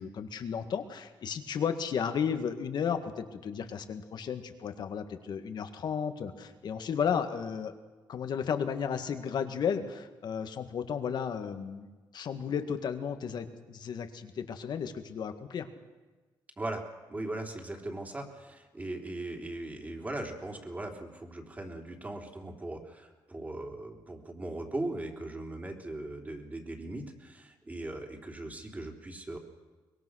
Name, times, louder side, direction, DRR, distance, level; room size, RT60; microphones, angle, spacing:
voice 1, 0.0-7.7 8.1-11.9 12.1-15.7, left 7 dB, 65° left, 7 dB, 1.9 m, -33 dB
voice 2, 16.6-29.4, right 2 dB, 20° right, 2 dB, 3.6 m, -39 dB
23.5 x 21.5 x 6.5 m, 1.3 s
cardioid pair, 110°, 8 cm